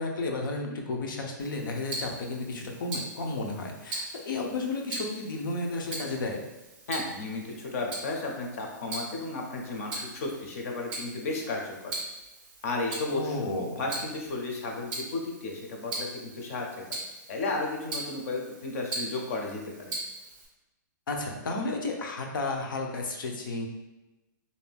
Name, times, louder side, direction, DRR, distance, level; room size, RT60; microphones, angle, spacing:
voice 1, 0.0-6.4 13.1-13.8 21.1-23.7, left 2 dB, 85° left, 2 dB, 0.6 m, -32 dB
Tick-tock, 1.4-20.5, right 2 dB, 10° right, 0.4 m, -41 dB
voice 2, 6.9-12.0 12.6-16.7 17.3-20.0, left 3 dB, 45° left, 1 dB, 0.5 m, -33 dB
2.6 x 2.2 x 3.3 m, 1.0 s
hypercardioid pair, 175°, 11 cm